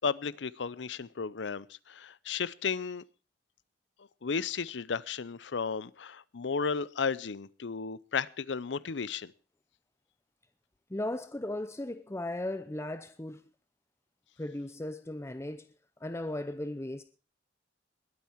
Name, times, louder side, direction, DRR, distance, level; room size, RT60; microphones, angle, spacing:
voice 1, 0.0-3.0 4.2-9.3, left 5 dB, 90° left, 0.6 m, -34 dB
voice 2, 10.9-13.4 14.4-15.7 16.0-17.0, left 1 dB, 15° left, 0.7 m, -36 dB
20.5 x 9.3 x 4.6 m
head